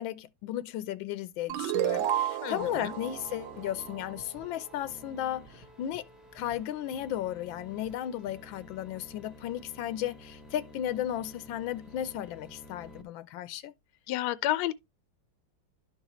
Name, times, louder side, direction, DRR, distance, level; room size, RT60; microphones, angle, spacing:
voice 1, 0.0-6.1 6.3-13.7, left 11 dB, 85° left, 1.4 m, -35 dB
sound 1, 1.5-4.7, right 11 dB, 85° right, 1.5 m, -32 dB
voice 2, 2.4-2.9 14.1-14.7, left 14 dB, 70° left, 1.1 m, -30 dB
sound 2, 2.6-13.0, left 1 dB, ahead, 0.6 m, -51 dB
12.0 x 4.0 x 2.9 m
omnidirectional pair, 2.1 m